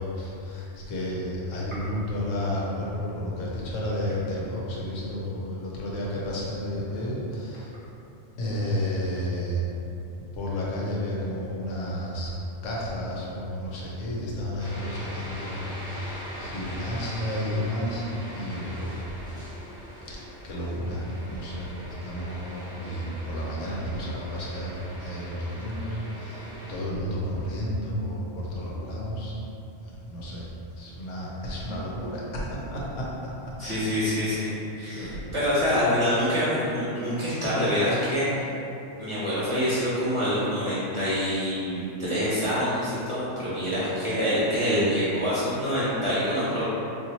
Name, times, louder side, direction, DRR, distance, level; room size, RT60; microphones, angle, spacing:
voice 1, 0.0-7.7 8.4-9.6 10.3-12.3 12.6-18.0 18.3-19.2 20.1-21.7 22.0-29.3 29.8-30.5 30.8-33.3 33.6-34.0 34.9-35.2, equal, 85° left, -5 dB, 1.1 m, -32 dB
sound 1, 14.6-26.8, equal, 5° right, 0.7 m, -41 dB
voice 2, 33.6-34.5 34.7-38.5 39.0-46.6, equal, 25° right, -12 dB, 1.1 m, -26 dB
2.9 x 2.6 x 4.1 m, 2.9 s
omnidirectional pair, 1.3 m